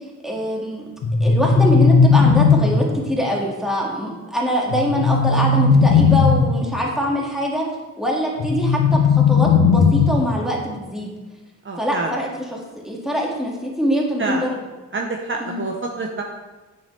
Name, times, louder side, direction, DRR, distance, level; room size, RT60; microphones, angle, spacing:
voice 1, 0.2-0.9 1.2-7.6 8.0-11.1 11.8-14.6 15.4-15.6, equal, ahead, -3 dB, 2.0 m, -23 dB
sound 1, 1.0-3.0 4.7-6.6 8.4-10.4, left 5 dB, 85° left, 1.1 m, -16 dB
voice 2, 11.6-12.1 14.2-14.4 14.9-16.2, right 3 dB, 40° right, 0 dB, 0.9 m, -27 dB
9.2 x 7.2 x 3.3 m, 1.2 s
wide cardioid pair, 100°, 31 cm